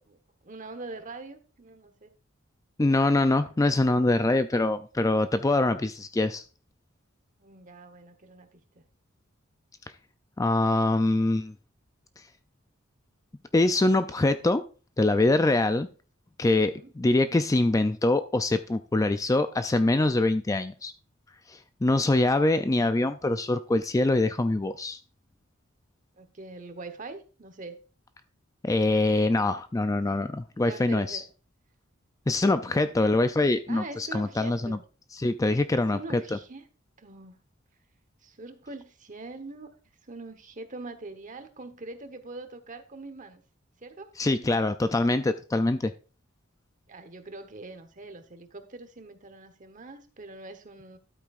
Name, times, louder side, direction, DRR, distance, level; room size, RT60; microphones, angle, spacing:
voice 1, 0.4-2.1 7.4-8.9 16.5-16.9 26.2-27.8 30.5-31.3 32.6-32.8 33.7-34.8 35.7-36.6 37.0-37.4 38.2-39.7 40.1-43.4 43.8-44.1 46.9-51.0, right 2 dB, 40° right, 8 dB, 1.1 m, -43 dB
voice 2, 2.8-6.4 10.4-11.5 13.5-14.6 15.0-15.9 16.4-20.9 21.5-25.0 28.6-31.2 32.3-34.8 35.2-36.2 44.2-45.9, left 2 dB, 15° left, 10 dB, 0.4 m, -24 dB
12.5 x 8.3 x 2.5 m, 0.36 s
head